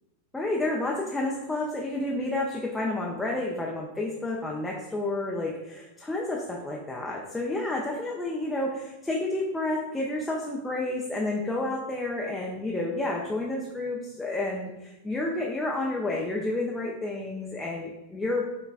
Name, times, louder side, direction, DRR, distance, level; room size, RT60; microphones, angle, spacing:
voice 1, 0.3-18.5, left 2 dB, 10° left, -2 dB, 0.5 m, -30 dB
5.3 x 3.1 x 2.5 m, 0.97 s
figure-of-eight pair, 90°, 0 cm